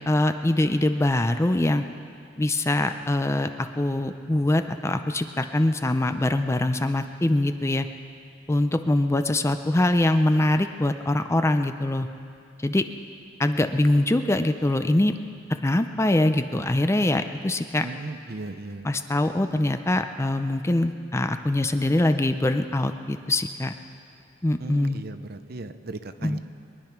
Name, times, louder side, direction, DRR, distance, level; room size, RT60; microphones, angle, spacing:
voice 1, 0.1-1.8 2.4-7.9 8.5-12.1 12.6-12.8 13.4-15.2 15.6-17.9 18.8-23.7 24.4-25.0 26.2-26.4, left 1 dB, 15° left, 8 dB, 0.5 m, -23 dB
voice 2, 17.8-18.9 24.6-26.4, right 2 dB, 55° right, 10 dB, 0.7 m, -37 dB
22.5 x 10.5 x 5.9 m, 2.3 s
head